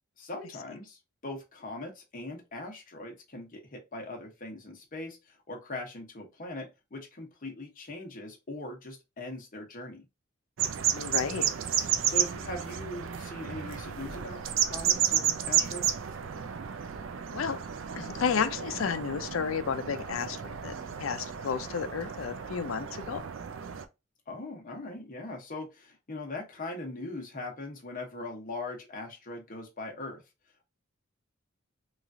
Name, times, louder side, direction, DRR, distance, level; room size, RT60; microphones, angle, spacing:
voice 1, 0.2-10.1 12.0-16.0 24.3-30.2, left 2 dB, 45° left, 0.9 m, -40 dB
sound 1, 10.6-23.8, right 8 dB, 65° right, 0.4 m, -32 dB
voice 2, 10.9-11.5 17.3-17.6 17.9-23.2, left 6 dB, 75° left, 0.4 m, -32 dB
3.1 x 2.4 x 2.5 m
head